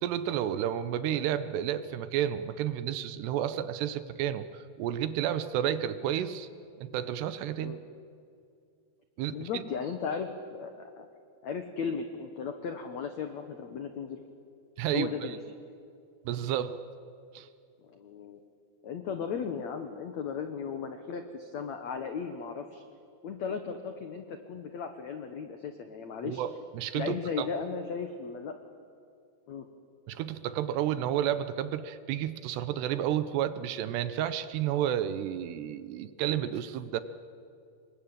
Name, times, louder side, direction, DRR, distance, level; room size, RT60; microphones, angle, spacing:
voice 1, 0.0-6.5 6.8-7.8 9.2-9.6 14.8-15.4 16.3-16.8 17.3-17.5 26.2-27.5 30.1-37.0, right 10 dB, 75° right, 13 dB, 2.8 m, -31 dB
voice 2, 9.3-11.1 11.4-14.2 14.9-15.4 17.9-18.4 18.8-22.8 23.2-26.4 26.9-28.5 29.5-29.7, left 6 dB, 90° left, 7 dB, 1.5 m, -36 dB
26.5 x 22.5 x 8.9 m, 2.4 s
omnidirectional pair, 5.2 m